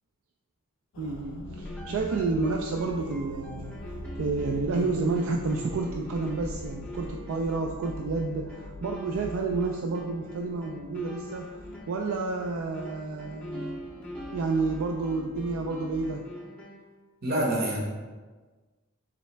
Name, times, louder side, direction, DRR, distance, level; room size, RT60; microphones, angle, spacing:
sound 1, 0.9-16.2, left 2 dB, 70° left, 0.3 m, -43 dB
voice 1, 1.0-11.5 11.9-13.8 14.3-16.2, right 3 dB, 70° right, 1 dB, 0.3 m, -30 dB
sound 2, 1.6-17.0, equal, 5° left, 0.5 m, -44 dB
voice 2, 17.2-17.8, right 1 dB, 45° right, -2 dB, 0.8 m, -26 dB
4.0 x 3.2 x 3.1 m, 1.4 s
head